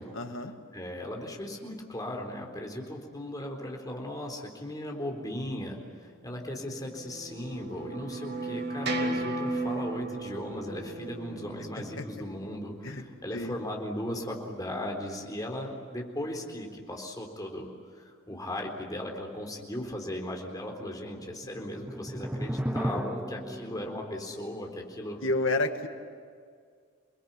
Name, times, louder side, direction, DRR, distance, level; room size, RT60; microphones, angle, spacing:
voice 1, 0.1-0.5 12.0-12.1 12.8-13.1 13.3-13.5 25.2-25.9, left 2 dB, 70° left, 5 dB, 2.2 m, -29 dB
voice 2, 0.7-25.2, left 1 dB, 20° left, 2 dB, 3.9 m, -37 dB
sound 1, 6.3-12.8, right 2 dB, 55° right, 2.4 m, -35 dB
sound 2, 11.8-13.5 13.8-13.9 21.2-23.9, equal, 10° right, 0.9 m, -36 dB
29.0 x 20.5 x 9.9 m, 2.1 s
head